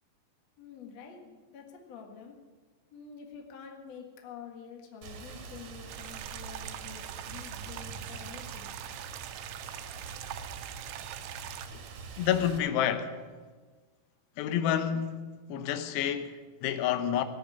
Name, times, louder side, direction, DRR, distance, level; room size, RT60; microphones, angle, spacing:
voice 1, 0.6-2.4 2.9-8.7, left 6 dB, 55° left, 1.9 m, -48 dB
Rain, 5.0-12.6, right 4 dB, 60° right, 2.5 m, -44 dB
sound 1, 5.9-11.7, right 12 dB, 80° right, 3.0 m, -43 dB
voice 2, 12.2-13.1 14.4-17.2, left 9 dB, 75° left, 2.8 m, -29 dB
18.5 x 7.2 x 9.8 m
omnidirectional pair, 5.5 m